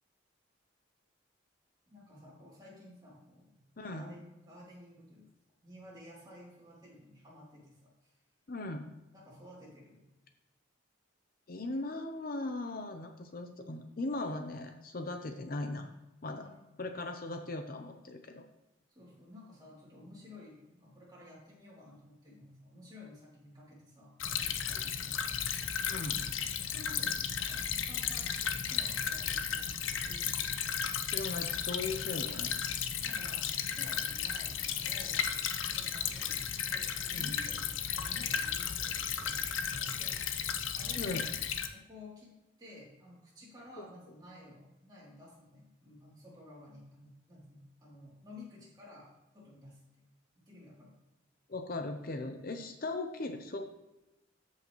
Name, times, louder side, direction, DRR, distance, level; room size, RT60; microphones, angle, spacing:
voice 1, 1.9-5.3 5.6-8.2 9.1-10.0 16.3-16.7 18.9-25.3 25.9-30.4 33.0-40.2 40.7-41.3 41.7-50.1 50.4-51.0, left 1 dB, 20° right, -6 dB, 2.9 m, -53 dB
voice 2, 3.8-4.1 8.5-8.9 11.5-15.9 16.2-16.5 16.8-18.4 24.7-24.8 25.9-26.2 31.1-32.6 37.1-37.4 41.0-41.3 43.8-43.9 51.5-53.7, left 2 dB, 45° left, 5 dB, 0.6 m, -38 dB
Stream / Trickle dribble, 24.2-41.7, left 8 dB, 80° left, 0.7 m, -34 dB
14.0 x 5.6 x 3.1 m, 1.0 s
head